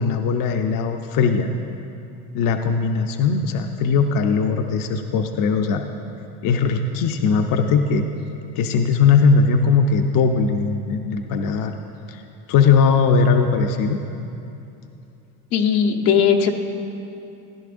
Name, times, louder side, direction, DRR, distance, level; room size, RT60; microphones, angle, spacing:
voice 1, 0.0-1.5 2.3-5.8 6.4-8.0 8.6-11.7 12.1-12.2 12.5-14.0, left 5 dB, 50° left, 5 dB, 0.7 m, -19 dB
voice 2, 15.5-16.5, left 7 dB, 80° left, 1 dB, 1.2 m, -18 dB
16.0 x 10.5 x 2.6 m, 2.8 s
supercardioid pair, 95°, 43 cm